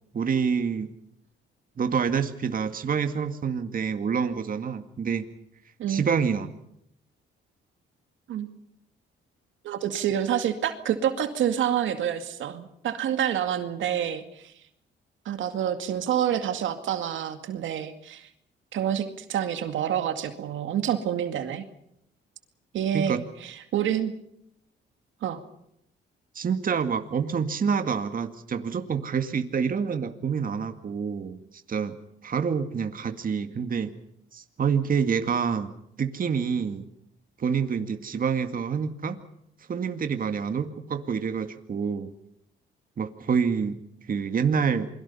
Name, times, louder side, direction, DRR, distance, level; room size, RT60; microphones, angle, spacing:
voice 1, 0.1-0.9 1.8-5.3 5.9-6.5 22.9-23.2 26.4-31.4 31.7-32.0 32.2-33.9 34.3-35.7 36.0-36.9 37.4-39.2 39.7-42.1 43.0-43.8 44.1-44.9, right 6 dB, 45° right, 7 dB, 2.1 m, -27 dB
voice 2, 9.6-14.5 15.3-18.3 18.7-21.6 22.7-24.1 25.2-25.4, right 9 dB, 75° right, 8 dB, 2.2 m, -28 dB
28.5 x 22.5 x 5.6 m, 0.77 s
cardioid pair, 90°, 20 cm